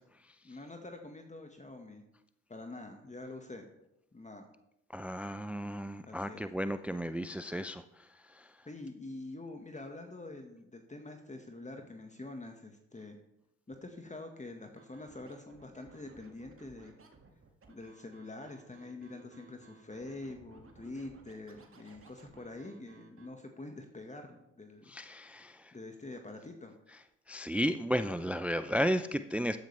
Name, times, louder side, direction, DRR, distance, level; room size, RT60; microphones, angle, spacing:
voice 1, 0.4-2.0 2.5-3.7 4.1-4.4 6.1-6.5 8.6-13.2 13.7-17.0 17.7-24.9 25.7-26.7, left 2 dB, 20° left, 4 dB, 1.6 m, -46 dB
voice 2, 4.9-8.5 24.9-25.7 27.3-29.6, equal, 5° right, 12 dB, 0.5 m, -34 dB
Scratching (performance technique), 14.8-23.3, right 4 dB, 40° right, 2.1 m, -58 dB
13.5 x 9.7 x 3.4 m, 0.83 s
hypercardioid pair, 45°, 35 cm